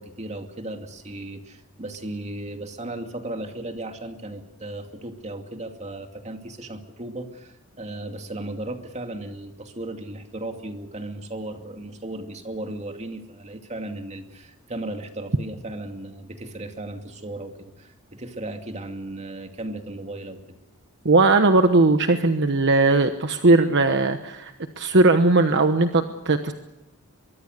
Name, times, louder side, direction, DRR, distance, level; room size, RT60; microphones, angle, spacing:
voice 1, 0.0-20.6, right 1 dB, 30° right, 5 dB, 2.5 m, -36 dB
voice 2, 21.0-26.5, right 2 dB, 55° right, 7 dB, 1.2 m, -18 dB
24.0 x 23.0 x 6.6 m, 0.94 s
head